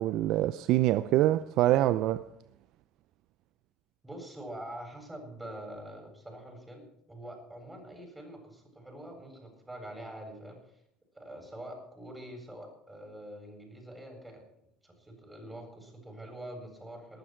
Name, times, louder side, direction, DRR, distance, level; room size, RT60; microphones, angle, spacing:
voice 1, 0.0-2.2, right 14 dB, 60° right, 0.5 m, -25 dB
voice 2, 4.0-10.6 11.1-14.4 14.8-17.2, right 1 dB, 10° right, 8.0 m, -45 dB
20.0 x 12.0 x 4.6 m
hypercardioid pair, 75°, 0 cm